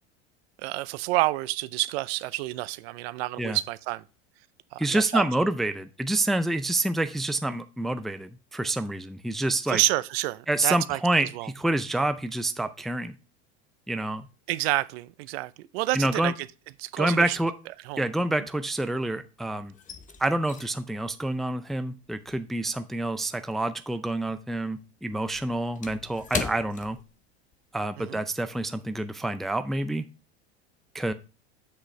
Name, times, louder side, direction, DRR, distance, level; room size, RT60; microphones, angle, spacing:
voice 1, 0.6-4.0 4.7-5.2 9.7-11.0 11.3-11.5 14.5-16.3 16.8-17.4 17.8-18.0 28.0-28.2, right 19 dB, 65° right, 0.6 m, -29 dB
voice 2, 4.8-9.8 10.5-13.2 13.9-14.3 15.9-16.3 17.0-17.5 18.0-19.7 20.2-27.0 27.7-30.0 30.9-31.1, right 2 dB, ahead, 0.4 m, -27 dB
sound 1, 16.5-16.9 17.1-19.1 19.4-24.1 24.4-27.7 28.0-28.2 28.6-28.9, left 6 dB, 25° left, 0.8 m, -41 dB
7.7 x 6.2 x 3.2 m
hypercardioid pair, 100°, 33 cm